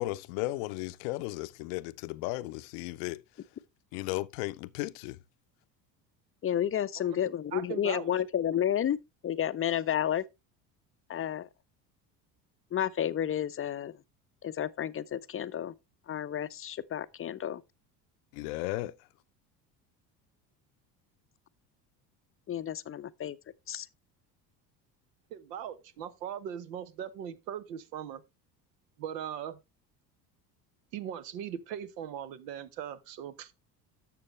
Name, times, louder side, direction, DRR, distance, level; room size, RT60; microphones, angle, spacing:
voice 1, 0.0-3.2 3.9-5.2 18.3-18.9, left 18 dB, 65° left, 0.7 m, -35 dB
voice 2, 6.4-9.0 9.2-10.2 11.1-11.5 12.7-13.9 14.4-15.7 16.1-17.6 22.5-23.4 23.7-23.9, left 10 dB, 25° left, 0.5 m, -31 dB
voice 3, 7.5-8.1 25.3-28.2 29.0-29.6 30.9-33.5, right 9 dB, 75° right, 1.1 m, -39 dB
11.5 x 6.8 x 3.2 m
hypercardioid pair, 65°, 49 cm